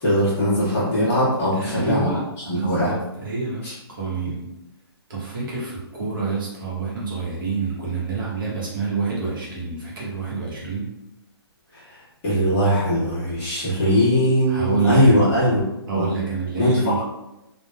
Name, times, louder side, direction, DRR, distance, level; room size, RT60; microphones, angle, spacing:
voice 1, 0.0-2.2 2.4-2.9 3.6-3.7 11.7-15.6 15.9-16.0 16.6-16.7, equal, 15° left, -11 dB, 1.1 m, -20 dB
voice 2, 1.5-4.5 5.1-10.9 14.5-15.3 15.9-17.0, right 4 dB, 55° right, -6 dB, 1.0 m, -27 dB
3.4 x 2.3 x 2.2 m, 0.92 s
hypercardioid pair, 165°, 14 cm